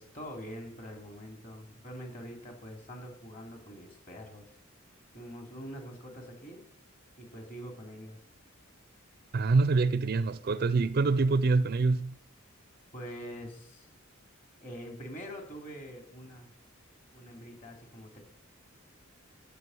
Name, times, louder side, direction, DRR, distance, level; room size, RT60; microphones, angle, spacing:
voice 1, 0.0-4.4 5.1-6.6 7.2-8.2 12.9-13.9 14.6-16.5 17.1-18.2, equal, 40° left, 2.8 m, -44 dB
voice 2, 9.3-12.1, right 3 dB, 45° right, 0.4 m, -25 dB
12.5 x 5.8 x 7.7 m
head